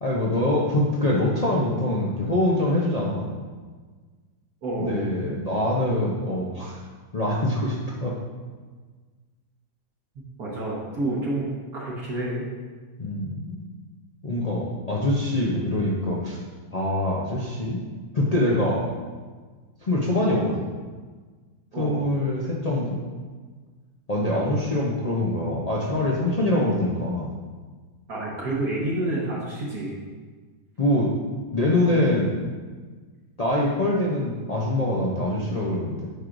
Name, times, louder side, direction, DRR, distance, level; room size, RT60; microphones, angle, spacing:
voice 1, 0.0-3.2 4.8-6.7 7.1-8.1 13.0-13.6 14.2-16.4 16.7-17.8 18.1-18.9 19.8-20.6 21.8-23.0 24.1-27.3 30.8-31.1 31.5-32.4 33.4-36.1, left 1 dB, 55° left, -5 dB, 0.4 m, -24 dB
voice 2, 4.6-5.0 10.4-11.5 11.7-12.4 20.3-20.5 21.7-22.0 28.1-30.0, right 2 dB, 65° right, -5 dB, 1.5 m, -29 dB
9.6 x 4.6 x 2.5 m, 1.4 s
omnidirectional pair, 1.7 m